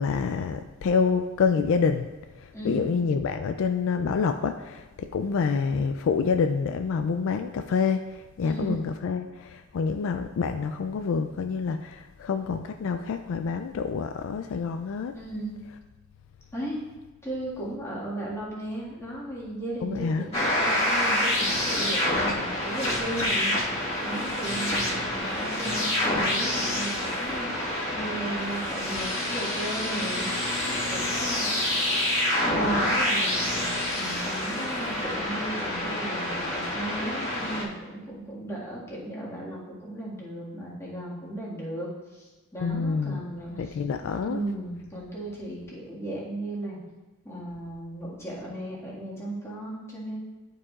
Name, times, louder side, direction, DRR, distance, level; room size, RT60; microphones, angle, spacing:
voice 1, 0.0-15.2 19.8-20.3 25.2-25.3 42.6-43.2 43.6-44.4, left 5 dB, 60° left, 7 dB, 0.3 m, -27 dB
voice 2, 2.5-2.9 8.4-8.8 15.1-15.6 16.5-16.8 17.2-23.5 24.0-27.6 27.9-30.3 30.6-31.4 32.4-33.7 34.0-43.5 44.3-46.8 47.2-50.2, right 1 dB, 10° left, -7 dB, 1.8 m, -35 dB
sound 1, 20.3-37.6, left 1 dB, 30° left, 1.5 m, -27 dB
11.0 x 4.8 x 2.4 m, 1.1 s
head